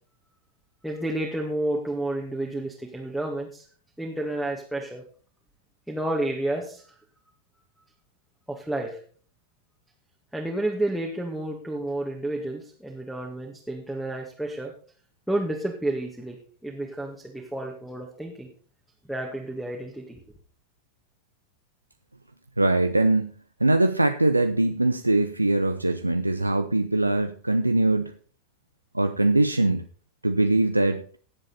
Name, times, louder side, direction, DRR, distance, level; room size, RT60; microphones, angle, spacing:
voice 1, 0.8-3.7 4.0-5.0 5.9-6.8 8.5-9.0 10.3-14.7 15.3-18.5 19.1-20.2, right 1 dB, ahead, -2 dB, 2.0 m, -30 dB
voice 2, 22.6-23.3 23.6-28.1 28.9-29.9 30.2-31.0, right 2 dB, 85° right, 8 dB, 0.6 m, -22 dB
18.0 x 7.5 x 4.1 m, 0.43 s
figure-of-eight pair, 90°, 0 cm